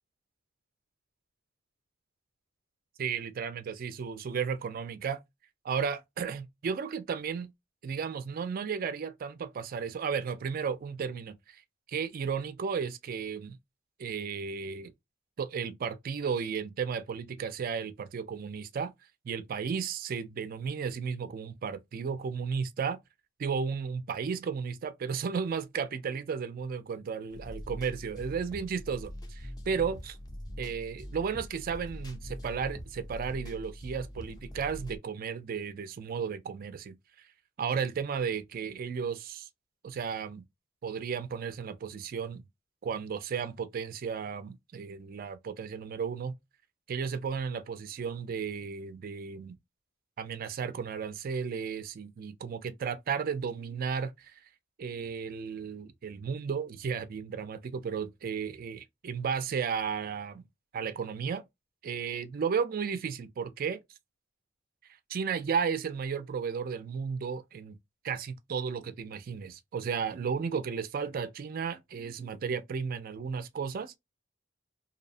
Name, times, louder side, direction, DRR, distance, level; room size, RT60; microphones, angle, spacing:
voice 1, 3.0-5.2 5.6-7.5 7.8-11.6 11.9-13.6 14.0-14.9 15.4-18.9 19.2-23.0 23.4-30.2 30.6-36.9 37.6-39.5 39.8-40.4 40.8-42.4 42.8-46.3 46.9-49.6 50.2-54.4 54.8-60.4 60.7-61.4 61.8-63.8 65.1-67.8 68.0-73.9, right 6 dB, 50° right, 0.3 m, -34 dB
sound 1, 27.3-35.0, equal, 20° left, 0.4 m, -43 dB
2.7 x 2.0 x 2.6 m
head